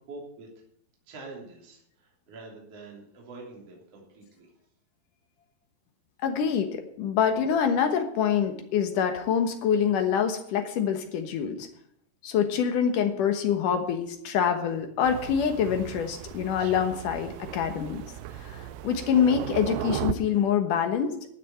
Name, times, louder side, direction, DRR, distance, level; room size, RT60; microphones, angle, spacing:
voice 1, 0.1-0.5 1.1-4.5, right 3 dB, 35° right, -2 dB, 3.9 m, -45 dB
voice 2, 6.2-11.7 12.2-18.0 18.4-21.2, left 7 dB, 65° left, 6 dB, 2.2 m, -25 dB
Thunder, 15.0-20.1, right 12 dB, 80° right, 2.3 m, -36 dB
13.0 x 7.5 x 9.3 m, 0.70 s
omnidirectional pair, 5.1 m